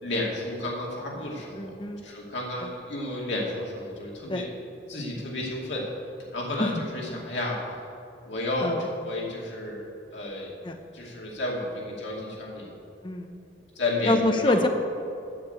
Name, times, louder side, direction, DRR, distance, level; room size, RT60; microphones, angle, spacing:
voice 1, 0.0-1.7 2.0-4.5 4.9-5.8 6.3-7.6 8.3-9.9 10.1-10.5 10.9-12.7 13.8-14.5, left 1 dB, 85° left, -3 dB, 2.4 m, -31 dB
voice 2, 1.6-2.0 4.3-4.4 6.6-6.7 7.1-7.2 8.6-8.8 10.6-10.8 13.0-13.3 14.1-14.7, left 2 dB, 25° left, 5 dB, 0.7 m, -25 dB
9.9 x 6.7 x 8.2 m, 2.7 s
head